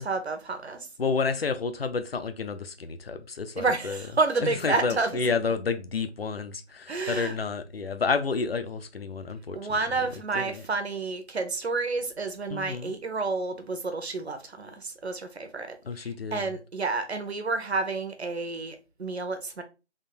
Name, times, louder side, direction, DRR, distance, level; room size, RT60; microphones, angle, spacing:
voice 1, 0.0-0.9 3.6-5.1 6.9-7.3 9.5-19.6, right 3 dB, 65° right, 0.9 m, -30 dB
voice 2, 1.0-4.0 4.4-9.6 10.3-10.6 12.5-13.0 15.8-16.4, left 5 dB, 55° left, 0.5 m, -30 dB
3.7 x 2.1 x 4.3 m
figure-of-eight pair, 170°, 35 cm